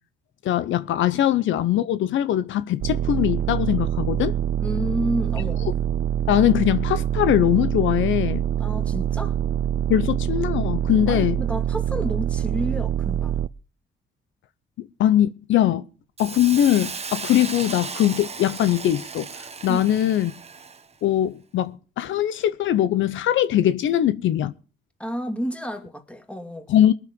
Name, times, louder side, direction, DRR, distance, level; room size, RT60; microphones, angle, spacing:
voice 1, 0.4-4.3 6.3-8.4 9.9-11.4 14.8-15.8 16.2-19.3 19.6-20.3 21.0-24.5 26.7-26.9, left 12 dB, 75° left, 0.8 m, -21 dB
sound 1, 2.8-13.5, right 10 dB, 50° right, 0.6 m, -25 dB
voice 2, 4.6-5.7 8.6-9.4 11.1-13.4 19.7-19.8 25.0-26.7, equal, 5° left, 2.3 m, -30 dB
Hiss, 16.2-20.9, right 5 dB, 30° right, 1.2 m, -35 dB
21.5 x 7.3 x 5.3 m
cardioid pair, 90°, 20 cm